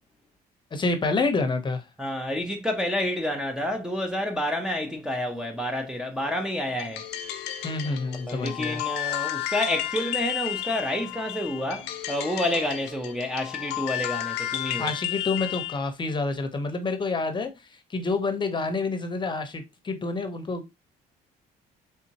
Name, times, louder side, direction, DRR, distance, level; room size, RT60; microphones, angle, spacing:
voice 1, 0.7-1.8 7.6-8.8 14.8-17.5 17.9-20.7, left 3 dB, 25° left, 0.9 m, -28 dB
voice 2, 2.0-7.1 8.0-14.9, left 1 dB, 5° right, 0.7 m, -29 dB
sound 1, 6.8-15.8, left 13 dB, 85° left, 0.6 m, -32 dB
4.2 x 3.6 x 2.8 m
cardioid pair, 110°, 17 cm